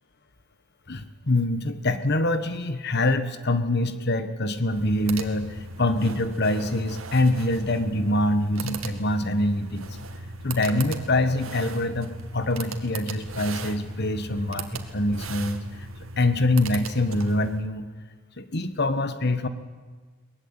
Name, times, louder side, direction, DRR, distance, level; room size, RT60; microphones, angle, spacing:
voice 1, 0.9-9.8 10.4-15.6 16.2-17.9 18.4-19.5, left 1 dB, 55° left, 11 dB, 1.5 m, -25 dB
sound 1, 4.6-17.6, right 3 dB, 85° right, 2.1 m, -38 dB
22.5 x 19.5 x 8.9 m, 1.5 s
head